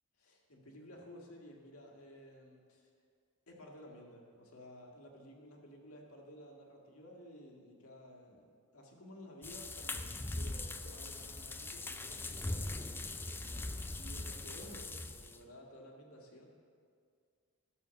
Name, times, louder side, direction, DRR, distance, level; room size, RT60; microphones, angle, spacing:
voice 1, 0.2-2.9 3.5-16.5, equal, 85° left, 0 dB, 1.8 m, -54 dB
sound 1, 9.4-15.4, left 2 dB, 10° left, 0.3 m, -41 dB
12.5 x 6.4 x 6.9 m, 2.2 s
head